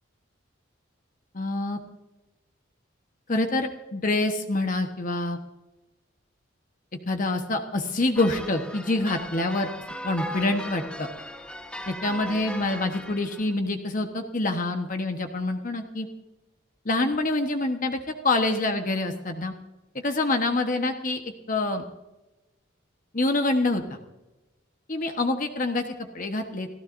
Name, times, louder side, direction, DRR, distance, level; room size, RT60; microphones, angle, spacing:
voice 1, 1.3-1.8 3.3-5.4 7.1-9.7 10.0-11.1 11.9-16.1 16.8-18.0 18.2-19.5 20.0-21.2 21.5-21.8 23.1-24.0 24.9-26.7, left 2 dB, 40° left, 5 dB, 1.2 m, -26 dB
sound 1, 8.1-13.5, equal, 5° left, 1.1 m, -38 dB
30.0 x 15.5 x 2.6 m, 1.0 s
head